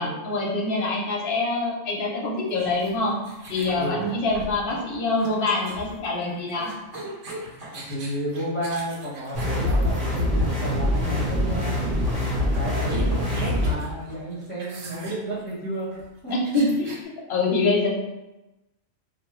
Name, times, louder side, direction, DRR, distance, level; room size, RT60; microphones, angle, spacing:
voice 1, 0.0-3.2 3.5-6.7 16.3-17.0 17.3-17.9, left 2 dB, 55° left, -2 dB, 0.9 m, -25 dB
sound 1, 2.5-10.5 11.3-11.5 11.8-11.9 12.2-17.0, right 1 dB, 85° right, 1.1 m, -42 dB
Knock, 3.7-4.9 6.6-7.8 9.4-10.6 12.1-13.5, equal, 45° right, 1.2 m, -42 dB
voice 2, 7.4-11.8 12.5-15.9 16.2-16.3, right 1 dB, 10° left, -11 dB, 1.1 m, -32 dB
sound 2, 9.3-13.7, left 1 dB, 65° right, 1.7 m, -24 dB
3.5 x 2.6 x 3.0 m, 1.0 s
omnidirectional pair, 1.3 m